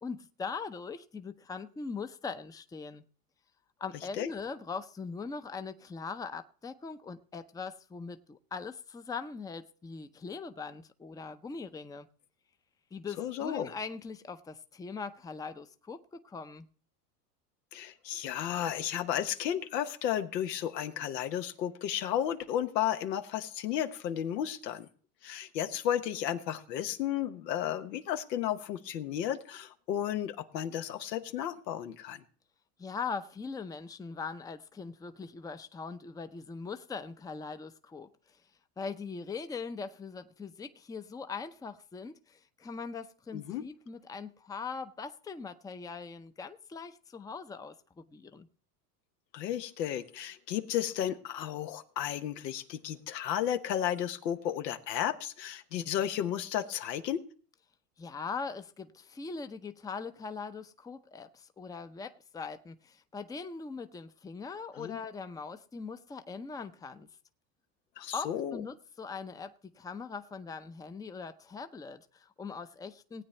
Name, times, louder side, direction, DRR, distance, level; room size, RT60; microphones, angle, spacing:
voice 1, 0.0-3.1 3.8-12.1 12.9-16.7 32.8-38.4 38.8-48.5 58.0-67.1 68.1-73.2, left 5 dB, 10° left, 0.6 m, -41 dB
voice 2, 13.2-13.7 17.7-24.9 25.2-32.2 43.3-43.7 49.3-57.2 64.8-65.0 68.0-68.6, left 10 dB, 85° left, 1.2 m, -33 dB
18.5 x 8.8 x 3.2 m
hypercardioid pair, 100°, 48 cm